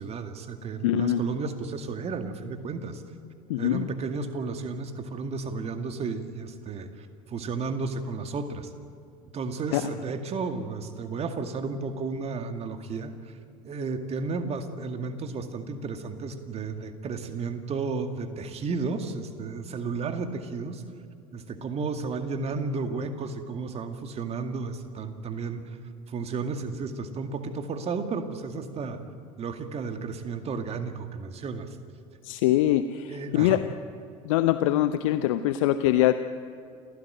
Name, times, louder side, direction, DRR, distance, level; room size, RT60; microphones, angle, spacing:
voice 1, 0.0-3.0 3.6-8.7 9.3-13.3 13.6-20.8 21.3-25.6 26.1-29.0 29.4-31.8 33.1-33.6, right 4 dB, 35° right, 7 dB, 2.2 m, -33 dB
voice 2, 0.8-1.2 3.5-3.9 9.7-9.9 32.2-33.6 34.2-36.1, left 13 dB, 60° left, 11 dB, 0.7 m, -23 dB
28.5 x 16.0 x 9.1 m, 2.3 s
figure-of-eight pair, 65°, 18 cm